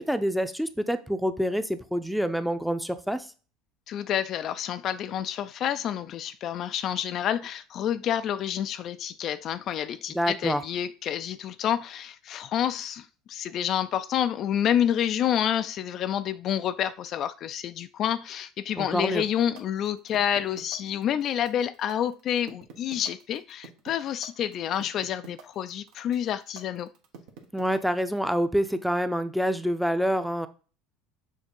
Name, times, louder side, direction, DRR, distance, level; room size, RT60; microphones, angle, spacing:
voice 1, 0.0-3.3 10.1-10.6 18.8-19.2 27.5-30.5, equal, ahead, 0.6 m, -27 dB
voice 2, 3.9-26.9, left 10 dB, 50° left, 0.4 m, -28 dB
sound 1, 19.0-28.2, right 6 dB, 70° right, 1.2 m, -47 dB
6.4 x 2.8 x 5.2 m
hypercardioid pair, 85°, 0 cm